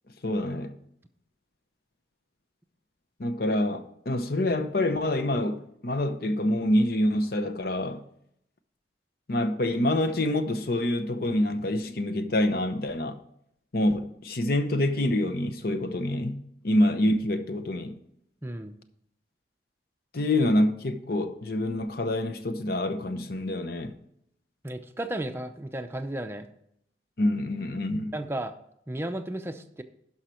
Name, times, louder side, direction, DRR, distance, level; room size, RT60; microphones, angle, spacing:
voice 1, 0.2-0.7 3.2-8.0 9.3-13.2 13.7-18.0 20.1-23.9 27.2-28.1, left 1 dB, 55° left, 0.8 m, -26 dB
voice 2, 18.4-18.8 24.6-26.5 28.1-28.5 28.9-29.8, right 1 dB, 15° right, 0.6 m, -34 dB
11.5 x 5.7 x 4.5 m
head